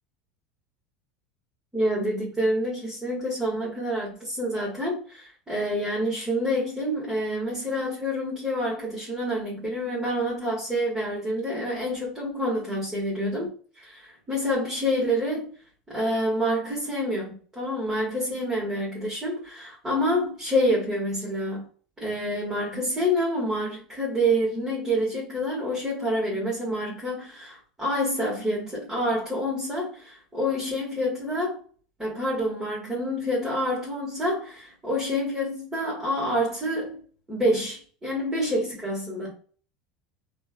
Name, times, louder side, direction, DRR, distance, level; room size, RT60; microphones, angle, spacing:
voice 1, 1.7-13.5 13.7-15.5 15.9-21.6 22.0-31.6 32.0-37.0 37.3-39.3, equal, 10° right, 1.4 m, -27 dB
2.9 x 2.4 x 2.2 m
hypercardioid pair, 90°, 4 cm